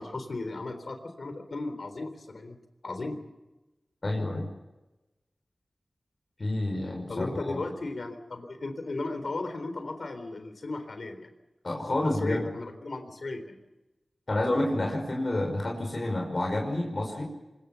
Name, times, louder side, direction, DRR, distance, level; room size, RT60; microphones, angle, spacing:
voice 1, 0.0-2.6 2.8-3.2 7.1-11.3 11.9-13.6, left 2 dB, 70° left, 8 dB, 3.8 m, -36 dB
voice 2, 4.0-4.5 6.4-7.3 11.6-12.4 14.3-17.2, left 1 dB, 50° left, 1 dB, 5.7 m, -29 dB
25.0 x 22.5 x 7.1 m, 1.0 s
wide cardioid pair, 60°, 0 cm